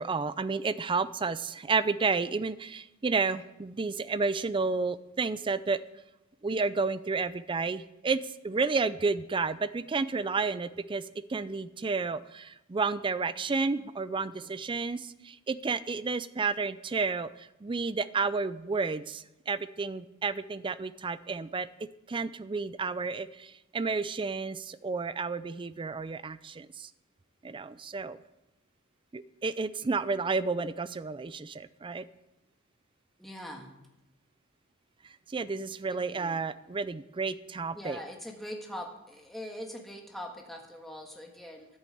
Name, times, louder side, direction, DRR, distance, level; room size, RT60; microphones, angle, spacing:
voice 1, 0.0-5.8 6.4-11.0 11.3-21.7 22.1-26.9 27.4-28.2 29.1-32.0 35.3-38.0, right 4 dB, 20° right, 15 dB, 0.4 m, -31 dB
voice 2, 33.2-33.7 35.9-36.4 37.7-41.7, equal, ahead, 0 dB, 1.6 m, -42 dB
10.5 x 8.5 x 7.9 m, 0.95 s
head